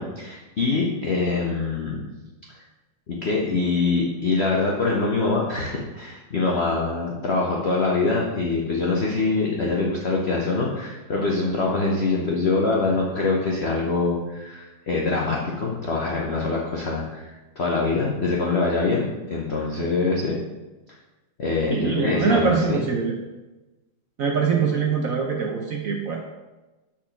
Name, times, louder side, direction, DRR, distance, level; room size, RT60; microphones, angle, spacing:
voice 1, 0.0-2.1 3.1-17.3 17.6-20.3 21.4-22.8, left 3 dB, 50° left, -2 dB, 0.8 m, -24 dB
voice 2, 21.7-23.1 24.2-26.2, right 6 dB, 65° right, 1 dB, 0.9 m, -23 dB
5.9 x 4.4 x 5.8 m, 1.1 s
omnidirectional pair, 2.2 m